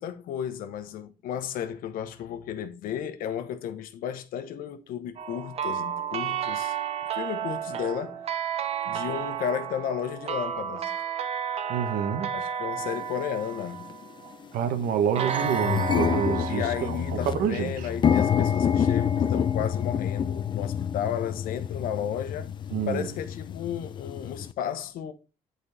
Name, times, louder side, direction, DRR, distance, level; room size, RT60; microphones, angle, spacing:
voice 1, 0.0-6.7 7.1-8.2 8.9-11.0 12.3-13.9 15.1-15.3 16.5-22.5 22.9-25.1, left 9 dB, 80° left, 1.0 m, -33 dB
sound 1, 5.2-14.4 15.2-18.0, right 8 dB, 45° right, 0.7 m, -32 dB
voice 2, 11.7-12.3 14.5-17.0 17.3-17.7 22.7-23.1, right 8 dB, 80° right, 1.1 m, -27 dB
sound 2, 12.9-13.0 13.8-14.0 14.4-14.5 14.8-24.5, left 8 dB, 35° left, 0.4 m, -27 dB
11.0 x 4.1 x 3.4 m
cardioid pair, 140°, 15 cm